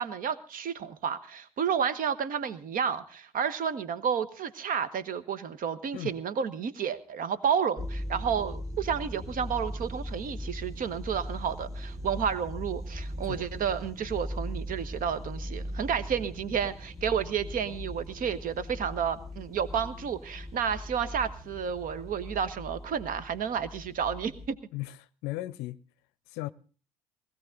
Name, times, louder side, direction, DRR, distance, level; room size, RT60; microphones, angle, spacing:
voice 1, 0.0-24.6, right 7 dB, 45° right, 1.3 m, -31 dB
sound 1, 7.8-24.5, equal, ahead, 1.3 m, -39 dB
voice 2, 25.2-25.8 26.3-26.5, left 17 dB, 60° left, 0.6 m, -36 dB
20.0 x 15.5 x 3.8 m
hypercardioid pair, 60°, 19 cm